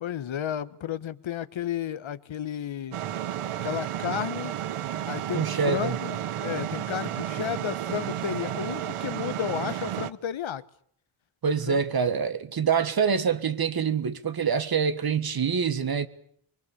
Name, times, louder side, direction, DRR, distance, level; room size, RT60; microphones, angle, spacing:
voice 1, 0.0-3.0 3.6-4.5 5.1-10.6 11.7-11.8, left 10 dB, 65° left, 1.1 m, -32 dB
sound 1, 2.9-10.1, right 11 dB, 80° right, 1.0 m, -32 dB
voice 2, 5.3-6.0 11.4-16.1, right 6 dB, 45° right, 1.5 m, -25 dB
24.5 x 24.0 x 7.2 m
wide cardioid pair, 165°, 50 cm